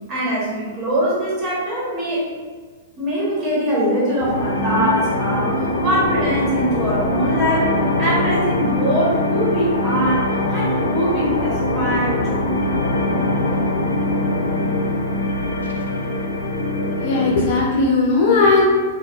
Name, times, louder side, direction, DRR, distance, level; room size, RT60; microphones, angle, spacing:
voice 1, 0.1-2.2 3.0-7.7 8.0-10.2 10.5-12.5, equal, 30° right, -7 dB, 1.2 m, -22 dB
sound 1, 4.2-17.5, left 1 dB, 75° left, 0.4 m, -22 dB
voice 2, 17.0-18.7, left 3 dB, 50° left, -2 dB, 0.9 m, -17 dB
4.2 x 2.2 x 2.4 m, 1.5 s
hypercardioid pair, 105°, 0 cm